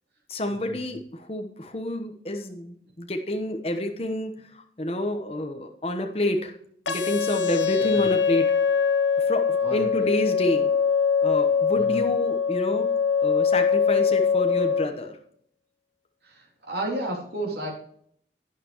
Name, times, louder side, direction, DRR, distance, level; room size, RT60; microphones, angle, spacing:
voice 1, 0.3-6.5 6.9-8.5 9.3-10.7 11.2-12.9 13.2-15.2, left 1 dB, 35° left, 4 dB, 1.1 m, -29 dB
sound 1, 6.9-14.9, left 6 dB, 85° left, 0.9 m, -23 dB
voice 2, 9.6-10.1 11.7-12.0 16.2-17.7, right 1 dB, 65° right, -1 dB, 3.2 m, -33 dB
12.0 x 9.3 x 3.1 m, 0.65 s
head